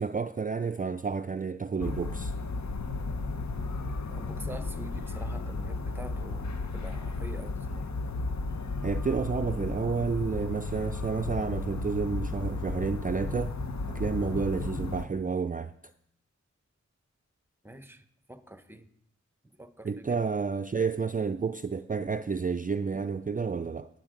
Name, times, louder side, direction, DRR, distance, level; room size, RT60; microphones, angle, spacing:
voice 1, 0.0-2.3 8.8-13.6 13.9-15.7 19.8-23.9, right 5 dB, 30° right, 0.4 m, -30 dB
sound 1, 1.8-15.1, left 3 dB, 70° left, 0.9 m, -34 dB
voice 2, 4.0-7.8 17.6-18.9 19.6-20.2, right 1 dB, 10° right, 0.9 m, -46 dB
19.0 x 7.9 x 3.8 m
wide cardioid pair, 55°, 29 cm